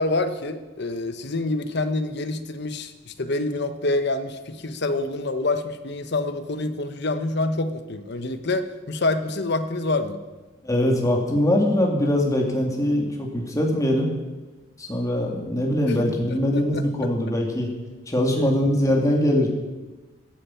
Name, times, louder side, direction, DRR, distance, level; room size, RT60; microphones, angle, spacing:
voice 1, 0.0-10.2 15.9-16.2 16.7-16.9 18.3-18.5, left 2 dB, 55° left, 10 dB, 1.0 m, -27 dB
voice 2, 10.6-14.1 14.8-17.7 18.1-19.5, left 1 dB, 15° left, 0 dB, 2.3 m, -22 dB
16.0 x 10.5 x 5.8 m, 1.2 s
head